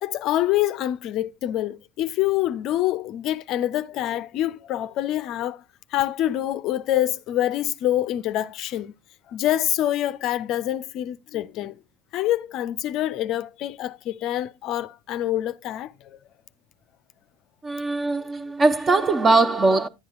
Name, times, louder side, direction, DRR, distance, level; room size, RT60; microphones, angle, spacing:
voice 1, 0.0-5.6 5.9-8.9 9.3-11.7 12.1-16.2, left 13 dB, 50° left, 0.4 m, -26 dB
voice 2, 17.6-19.9, right 3 dB, 25° right, 0.7 m, -20 dB
10.5 x 9.3 x 2.4 m
figure-of-eight pair, 70°, 0 cm